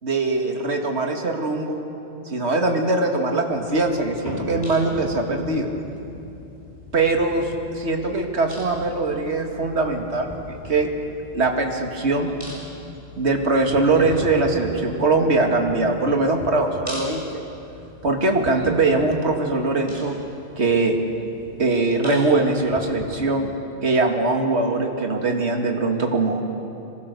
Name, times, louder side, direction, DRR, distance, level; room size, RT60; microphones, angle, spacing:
voice 1, 0.0-1.8 2.3-5.7 6.9-10.9 11.3-12.4 13.2-17.4 18.0-20.1 20.6-21.0 21.6-26.4, right 3 dB, 65° right, 2 dB, 2.3 m, -22 dB
sound 1, 3.5-23.1, left 1 dB, 20° left, 7.8 m, -41 dB
sound 2, 4.2-20.6 20.9-21.4 22.0-22.1 22.9-23.0, equal, 70° left, 7.6 m, -43 dB
26.5 x 23.0 x 6.8 m, 2.8 s
omnidirectional pair, 1.2 m